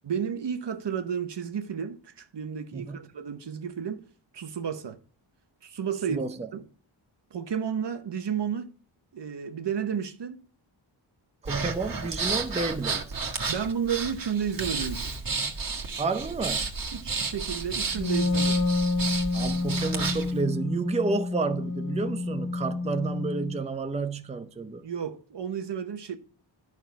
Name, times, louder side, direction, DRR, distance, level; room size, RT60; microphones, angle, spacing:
voice 1, 0.0-4.1 4.3-5.0 5.6-6.3 6.5-6.6 7.3-8.8 9.1-10.5 13.5-15.2 16.9-18.7 24.8-26.2, right 7 dB, 60° right, 1.1 m, -32 dB
voice 2, 2.7-3.1 6.1-6.5 11.4-13.2 16.0-16.7 19.3-24.8, right 3 dB, 15° right, 0.6 m, -30 dB
Breathing, 11.4-20.3, right 4 dB, 45° right, 1.7 m, -32 dB
Wind instrument woodwind instrument, 17.9-23.6, left 3 dB, 40° left, 1.8 m, -29 dB
10.5 x 6.0 x 4.6 m
wide cardioid pair, 70°, 47 cm